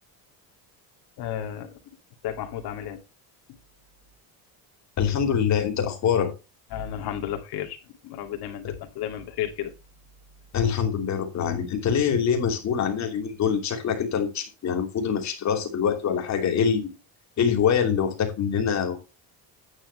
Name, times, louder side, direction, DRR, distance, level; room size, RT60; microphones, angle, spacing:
voice 1, 1.2-1.7 2.2-3.0 6.7-7.8 8.0-9.7, left 10 dB, 60° left, 2.6 m, -32 dB
voice 2, 5.0-6.3 8.6-8.7 10.5-16.9 17.4-19.0, left 7 dB, 40° left, 2.9 m, -24 dB
10.0 x 9.0 x 3.3 m
cardioid pair, 165°, 43 cm